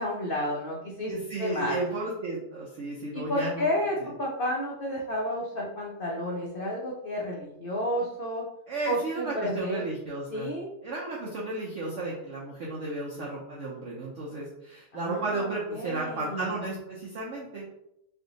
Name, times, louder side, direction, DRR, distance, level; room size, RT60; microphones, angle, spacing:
voice 1, 0.0-1.1 1.4-1.8 3.1-8.4 8.9-9.9 10.3-10.7 14.9-16.5, left 1 dB, 80° left, -3 dB, 0.4 m, -31 dB
voice 2, 1.1-3.7 4.0-4.1 8.7-10.5 10.8-17.6, right 2 dB, 60° right, -4 dB, 0.8 m, -33 dB
3.3 x 2.6 x 3.9 m, 0.81 s
omnidirectional pair, 1.8 m